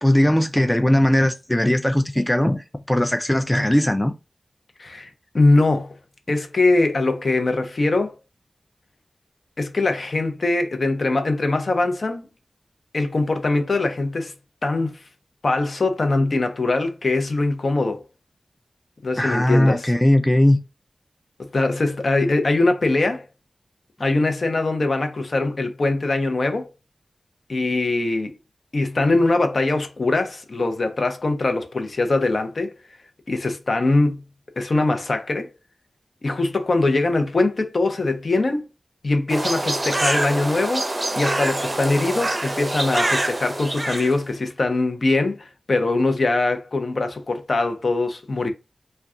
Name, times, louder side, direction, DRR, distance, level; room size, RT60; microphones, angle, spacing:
voice 1, 0.0-4.1 19.2-20.6, left 1 dB, 10° left, 0.4 m, -19 dB
voice 2, 4.8-5.9 6.3-8.1 9.6-12.2 12.9-14.3 14.6-14.9 15.4-18.0 19.0-19.9 21.4-23.3 24.0-26.7 27.5-28.3 28.7-32.7 33.3-34.2 34.6-35.5 36.2-38.6 39.0-40.9 41.2-48.5, left 2 dB, 65° left, 0.6 m, -22 dB
sound 1, 39.3-44.1, right 1 dB, 35° right, 0.6 m, -25 dB
2.3 x 2.2 x 3.6 m
wide cardioid pair, 60°, 0 cm